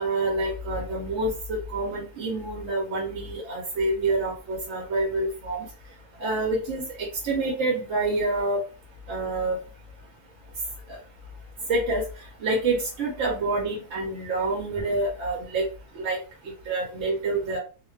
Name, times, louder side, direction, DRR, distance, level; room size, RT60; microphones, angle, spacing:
voice 1, 0.0-5.6 6.2-8.6 9.1-9.6 11.7-12.0 12.4-15.7 16.0-16.2 16.7-17.6, right 2 dB, 60° right, -1 dB, 0.8 m, -27 dB
2.5 x 2.2 x 2.2 m, 0.35 s
omnidirectional pair, 1.6 m